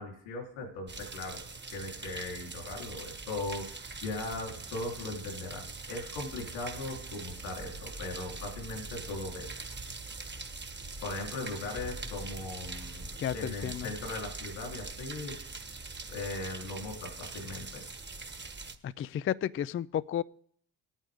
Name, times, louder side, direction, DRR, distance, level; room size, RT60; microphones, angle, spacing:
voice 1, 0.0-1.4 1.7-9.5 11.0-13.0 13.3-15.4 16.1-17.8, left 2 dB, 90° left, 0 dB, 3.7 m, -39 dB
sound 1, 0.9-18.8, right 3 dB, 25° right, 1.4 m, -42 dB
voice 2, 13.2-13.9 18.8-20.2, left 10 dB, 30° left, 17 dB, 0.4 m, -32 dB
18.0 x 9.1 x 3.6 m, 0.63 s
supercardioid pair, 55°, 44 cm